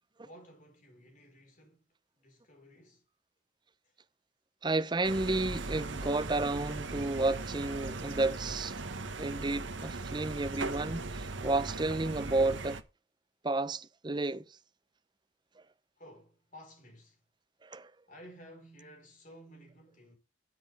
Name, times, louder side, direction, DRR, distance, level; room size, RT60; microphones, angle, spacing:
voice 1, 0.2-3.1 3.8-4.0 16.0-17.2 18.1-20.2, equal, 40° left, 4.4 m, -54 dB
voice 2, 4.6-8.8 9.2-12.8 13.4-14.4 17.6-17.9, right 2 dB, 25° right, 0.6 m, -31 dB
sound 1, 5.0-12.8, right 3 dB, 75° right, 1.2 m, -39 dB
13.0 x 7.9 x 3.4 m
head